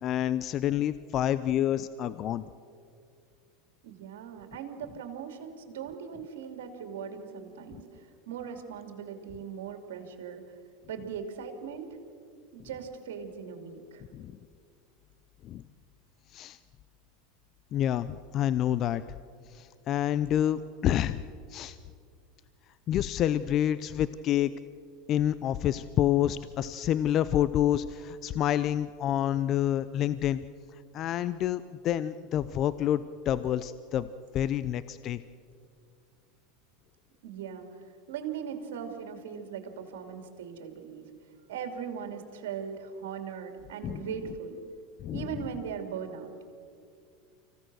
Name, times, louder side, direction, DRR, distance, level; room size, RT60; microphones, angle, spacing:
voice 1, 0.0-2.5 14.1-14.3 15.4-15.6 16.3-16.6 17.7-19.0 19.5-21.2 21.5-21.8 22.9-24.5 25.1-30.4 30.9-34.1 34.3-35.2 43.8-44.0 45.0-45.3, left 11 dB, 45° left, 15 dB, 0.6 m, -28 dB
voice 2, 3.8-7.8 8.3-10.4 10.9-11.9 12.5-14.0 37.2-37.7 38.1-41.1 41.5-44.6 45.1-46.3, right 7 dB, 75° right, 6 dB, 2.7 m, -39 dB
25.5 x 16.0 x 6.3 m, 2.3 s
hypercardioid pair, 95°, 0 cm